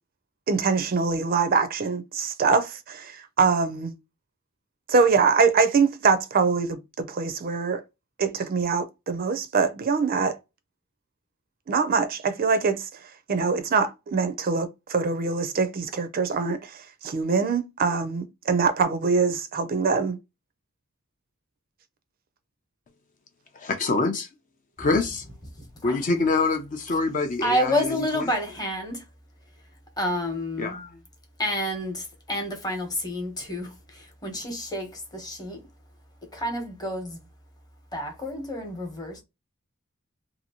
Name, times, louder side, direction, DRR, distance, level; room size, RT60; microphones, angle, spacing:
voice 1, 0.5-3.9 4.9-7.8 8.2-10.4 11.7-12.9 13.3-20.2, right 5 dB, 45° right, 0.4 m, -24 dB
voice 2, 23.5-24.3 24.8-25.2 25.8-28.3 30.6-31.0, left 3 dB, 35° left, 0.4 m, -26 dB
voice 3, 27.4-29.0 30.0-30.8 31.4-35.6 36.3-37.2 37.9-39.2, left 1 dB, 20° left, 0.9 m, -29 dB
2.7 x 2.5 x 2.8 m
head